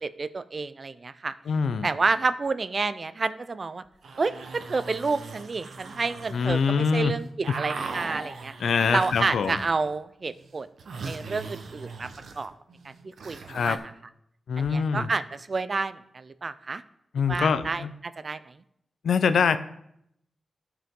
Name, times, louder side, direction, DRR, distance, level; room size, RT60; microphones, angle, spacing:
voice 1, 0.0-1.3 1.8-3.8 4.2-8.5 8.9-10.7 11.1-12.1 12.4-12.5 12.8-12.9 13.2-13.4 13.6-13.8 14.6-16.8 17.3-18.5, right 4 dB, 40° right, 14 dB, 0.4 m, -29 dB
voice 2, 1.5-1.9 6.3-7.1 8.6-9.6 13.5-13.8 14.5-15.1 17.1-17.9 19.0-19.6, left 6 dB, 85° left, 11 dB, 0.5 m, -24 dB
sound 1, 3.9-6.8 7.0-10.0 10.2-13.8, right 4 dB, 80° right, 0.9 m, -40 dB
14.0 x 4.9 x 3.7 m, 0.76 s
wide cardioid pair, 135°, 0 cm